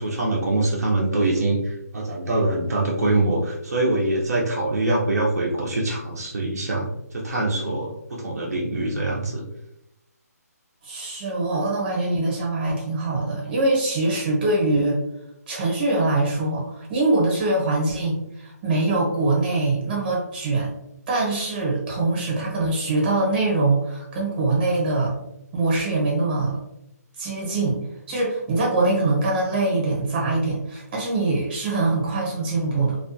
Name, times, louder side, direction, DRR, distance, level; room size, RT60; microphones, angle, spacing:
voice 1, 0.0-9.4, right 2 dB, 65° right, -3 dB, 0.6 m, -24 dB
voice 2, 10.8-15.0 15.5-20.7 21.1-25.1 25.5-26.6 27.2-27.8 28.1-33.0, right 2 dB, 30° right, -2 dB, 0.9 m, -23 dB
2.4 x 2.2 x 2.5 m, 0.82 s
hypercardioid pair, 155°, 9 cm